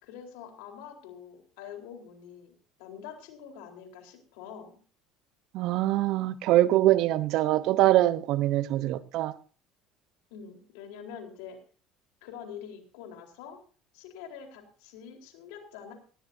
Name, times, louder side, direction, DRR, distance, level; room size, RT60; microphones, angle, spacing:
voice 1, 0.0-2.5 2.8-4.8 10.3-11.6 12.2-13.6 13.9-15.9, left 8 dB, 75° left, 4.2 m, -45 dB
voice 2, 5.5-9.3, right 15 dB, 65° right, 0.9 m, -23 dB
17.5 x 17.0 x 2.8 m
hypercardioid pair, 70°, 0 cm